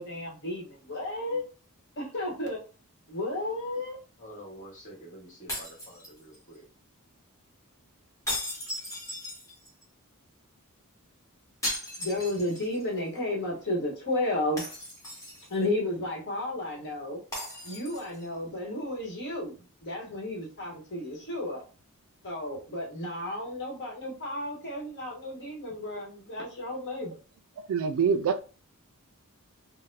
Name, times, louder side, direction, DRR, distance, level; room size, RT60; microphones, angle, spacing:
voice 1, 0.0-1.4 2.0-2.6 3.1-4.0 12.0-14.6 15.5-17.2 17.6-21.6 22.2-27.1, left 1 dB, 55° left, 1.1 m, -33 dB
voice 2, 4.2-6.7, equal, 35° left, 1.4 m, -47 dB
sound 1, 5.5-6.6 8.3-9.8 11.6-12.8 13.2-13.3 14.6-15.6 17.3-18.3, left 1 dB, 15° left, 1.1 m, -37 dB
voice 3, 27.6-28.4, right 6 dB, 65° right, 0.3 m, -25 dB
4.0 x 2.1 x 2.6 m
head